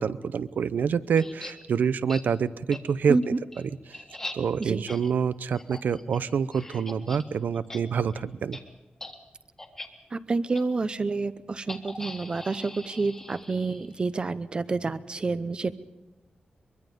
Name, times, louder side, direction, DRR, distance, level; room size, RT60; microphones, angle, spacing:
voice 1, 0.0-4.0 4.3-8.6, right 6 dB, 80° right, 15 dB, 0.7 m, -27 dB
sound 1, 1.2-1.5 2.1-2.2 2.7-2.8 3.2-7.2 7.5-8.2 8.5-8.6 9.0-9.1 9.6-9.9 10.5-10.6 11.7-14.0, left 2 dB, 15° left, 1.7 m, -41 dB
voice 2, 3.1-3.4 4.6-4.8 10.1-15.7, right 3 dB, 30° right, 14 dB, 0.7 m, -28 dB
23.5 x 23.0 x 5.3 m, 1.0 s
wide cardioid pair, 160°, 3 cm